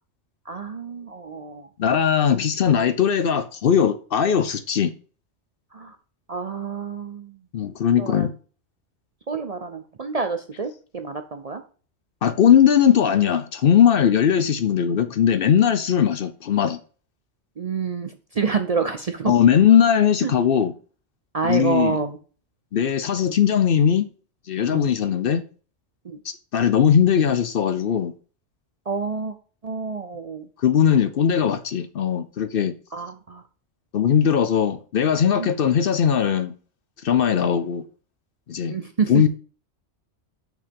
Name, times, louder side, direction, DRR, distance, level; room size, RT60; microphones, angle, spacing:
voice 1, 0.5-1.7 5.7-6.0 6.3-7.4 8.0-8.3 9.3-11.6 17.6-19.3 20.2-20.3 21.3-22.2 24.7-24.9 26.0-26.2 28.9-29.3 29.6-30.5 32.9-33.4 35.4-35.5 37.4-37.6 38.7-39.1, right 5 dB, 45° right, 0.5 m, -28 dB
voice 2, 1.8-4.9 7.5-8.3 12.2-16.8 19.3-20.7 21.4-22.0 22.7-24.1 24.5-25.4 26.2-28.1 30.6-32.7 33.9-36.5 37.0-37.9 38.5-38.8 39.1-39.3, left 8 dB, 60° left, 0.7 m, -19 dB
5.8 x 4.7 x 5.2 m
omnidirectional pair, 1.2 m